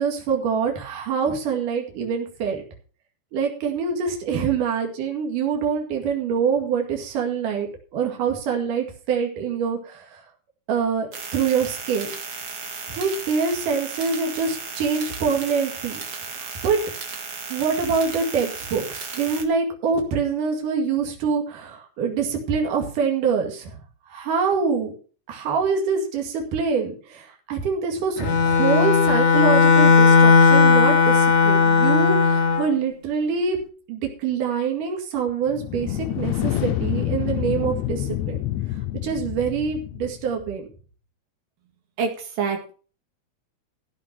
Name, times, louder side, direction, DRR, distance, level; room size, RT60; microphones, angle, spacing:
voice 1, 0.0-2.6 3.3-10.2 10.7-12.1 12.9-16.0 16.3-16.8 17.5-23.8 24.1-24.9 25.3-33.6 33.9-38.4 39.0-40.7, right 6 dB, 65° right, 2 dB, 3.7 m, -25 dB
sound 1, 11.1-19.4, right 5 dB, 40° right, 2.2 m, -35 dB
Bowed string instrument, 28.2-32.7, left 5 dB, 65° left, 1.0 m, -16 dB
sound 2, 35.5-40.3, left 13 dB, 85° left, 1.6 m, -27 dB
voice 2, 42.0-42.7, right 5 dB, 85° right, 2 dB, 3.8 m, -26 dB
15.5 x 6.2 x 6.0 m, 0.39 s
omnidirectional pair, 4.0 m